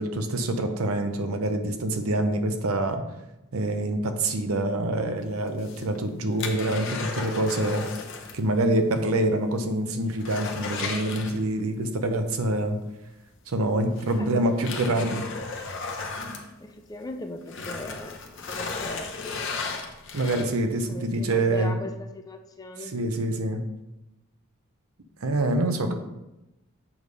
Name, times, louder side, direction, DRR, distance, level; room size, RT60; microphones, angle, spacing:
voice 1, 0.0-3.0 3.5-7.8 8.3-12.8 13.5-15.2 20.1-21.7 22.9-23.6 25.2-25.9, right 1 dB, 80° right, 6 dB, 0.7 m, -26 dB
sound 1, 5.5-8.5 8.7-8.8 9.3-9.4 9.8-11.8 13.2-13.3 14.0-17.1 17.4-20.7 21.3-21.4, left 4 dB, 55° left, 0.8 m, -35 dB
voice 2, 14.2-15.2 16.6-19.8 20.9-22.9 25.6-25.9, left 2 dB, 15° left, 5 dB, 0.4 m, -40 dB
7.2 x 3.3 x 5.3 m, 0.96 s
head